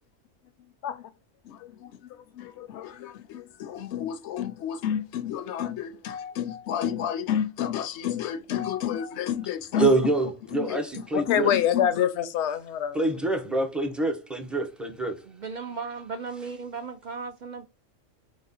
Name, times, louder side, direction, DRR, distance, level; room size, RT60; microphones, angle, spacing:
voice 1, 1.4-9.9 10.5-13.0, left 9 dB, 70° left, 0.8 m, -29 dB
voice 2, 9.7-11.5 12.9-15.2, right 2 dB, ahead, 0.5 m, -26 dB
voice 3, 15.2-17.7, right 5 dB, 65° right, 0.4 m, -36 dB
4.8 x 2.1 x 3.9 m
omnidirectional pair, 1.3 m